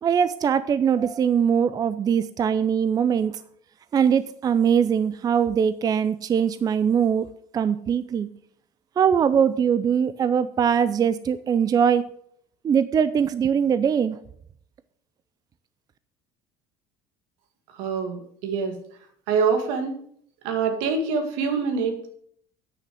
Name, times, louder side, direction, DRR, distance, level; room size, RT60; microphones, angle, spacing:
voice 1, 0.0-3.3 3.9-7.3 7.5-8.3 9.0-12.1 12.6-14.2, right 7 dB, 30° right, 14 dB, 0.5 m, -21 dB
voice 2, 17.7-18.8 19.3-20.0 20.4-22.1, right 5 dB, 85° right, 6 dB, 2.1 m, -25 dB
8.5 x 6.5 x 7.6 m, 0.65 s
cardioid pair, 120°, 13 cm